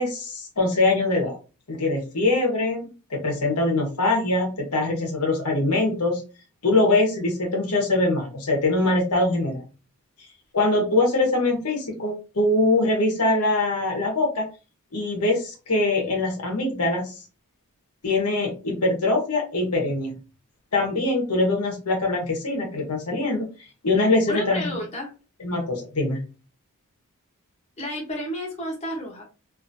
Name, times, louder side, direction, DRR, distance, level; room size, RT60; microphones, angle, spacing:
voice 1, 0.0-1.4 1.7-6.2 6.6-9.6 10.5-14.4 14.9-17.1 18.0-20.1 20.7-23.4 23.8-24.7 25.4-26.2, left 2 dB, 90° left, 1 dB, 1.1 m, -23 dB
voice 2, 24.3-25.1 27.8-29.2, equal, 30° left, -1 dB, 0.9 m, -31 dB
2.8 x 2.6 x 2.6 m, 0.32 s
head